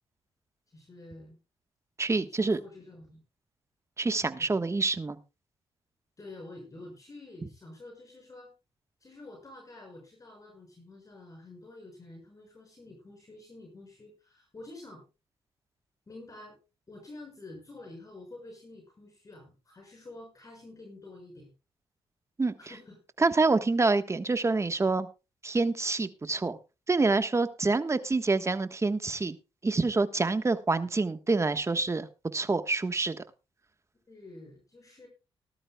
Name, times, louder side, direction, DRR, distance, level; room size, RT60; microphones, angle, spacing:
voice 1, 0.7-1.4 2.2-3.2 4.4-4.6 6.2-8.5 9.0-15.0 16.1-16.6 16.9-21.5 22.6-23.0 34.1-35.1, left 2 dB, 35° left, 1 dB, 6.0 m, -48 dB
voice 2, 2.0-2.6 4.0-5.2 22.4-22.5 23.2-25.1 25.4-26.6 26.9-29.4 29.6-32.1 32.3-33.2, right 3 dB, 30° right, 10 dB, 1.4 m, -27 dB
19.0 x 12.5 x 2.3 m, 0.29 s
cardioid pair, 70°, 10 cm